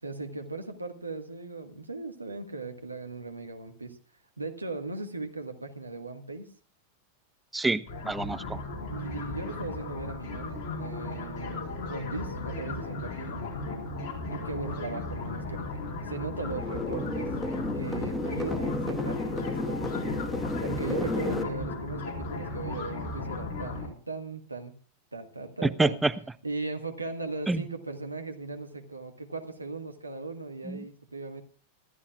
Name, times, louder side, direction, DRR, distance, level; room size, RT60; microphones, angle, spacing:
voice 1, 0.0-4.0 4.4-6.5 8.9-13.4 14.3-15.6 16.0-17.3 17.7-19.8 20.6-24.7 25.1-26.0 26.4-31.4, right 3 dB, 80° right, 6 dB, 1.6 m, -38 dB
voice 2, 7.5-8.6 25.6-26.1 27.5-27.6 30.7-30.8, right 3 dB, 10° right, 15 dB, 0.5 m, -27 dB
sound 1, 7.9-23.9, left 2 dB, 45° left, 4.5 m, -36 dB
sound 2, 16.4-21.4, left 2 dB, 5° left, 2.1 m, -32 dB
25.5 x 12.5 x 2.4 m, 0.37 s
figure-of-eight pair, 90°, 0 cm